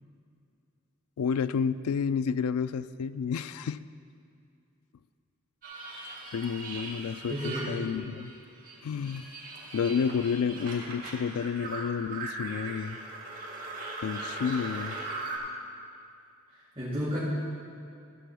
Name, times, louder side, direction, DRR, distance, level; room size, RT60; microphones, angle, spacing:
voice 1, 1.2-3.8 6.3-8.3 8.8-9.3 9.7-13.0 14.0-15.0, left 6 dB, 85° left, 15 dB, 0.3 m, -30 dB
sound 1, 5.6-8.4 8.6-15.4, right 2 dB, 40° right, 1.9 m, -39 dB
voice 2, 7.3-7.8 16.8-17.2, equal, 25° right, -11 dB, 2.1 m, -32 dB
13.5 x 5.0 x 6.9 m, 2.5 s
head